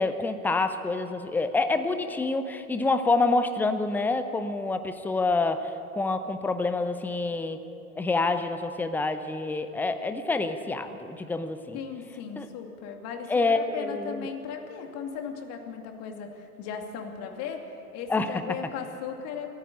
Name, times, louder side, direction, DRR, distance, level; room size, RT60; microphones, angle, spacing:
voice 1, 0.0-7.6 8.0-11.8 12.4-12.5 13.3-14.3 18.1-18.4, left 3 dB, 5° left, 9 dB, 0.7 m, -27 dB
voice 2, 11.7-19.5, left 7 dB, 35° left, 3 dB, 2.6 m, -37 dB
27.0 x 9.7 x 10.0 m, 2.8 s
figure-of-eight pair, 110°, 45 cm